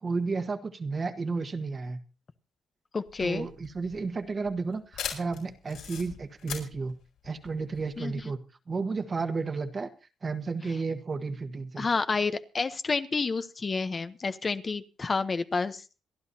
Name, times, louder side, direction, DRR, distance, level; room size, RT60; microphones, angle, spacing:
voice 1, 0.0-2.0 3.2-6.9 7.2-8.4 8.7-9.9 10.2-11.9, right 4 dB, 35° right, 7 dB, 1.6 m, -32 dB
voice 2, 2.9-3.5 8.0-8.1 11.8-16.0, left 4 dB, 35° left, 10 dB, 0.9 m, -29 dB
sound 1, 3.1-8.2, left 8 dB, 85° left, 6.2 m, -41 dB
27.5 x 11.0 x 2.8 m, 0.33 s
cardioid pair, 90°, 0 cm